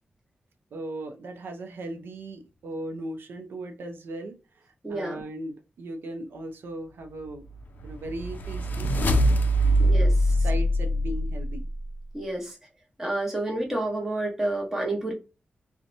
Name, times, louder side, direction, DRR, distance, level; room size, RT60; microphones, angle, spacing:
voice 1, 0.7-4.4 4.6-7.4 7.8-9.2 9.6-9.8 10.3-11.7, right 1 dB, 85° right, 0.5 m, -37 dB
voice 2, 4.8-5.2 9.8-10.3 12.1-12.6 13.0-15.1, right 2 dB, 10° right, 0.8 m, -29 dB
sound 1, 7.5-11.8, equal, 55° left, 0.4 m, -23 dB
2.7 x 2.1 x 2.5 m
wide cardioid pair, 165°, 4 cm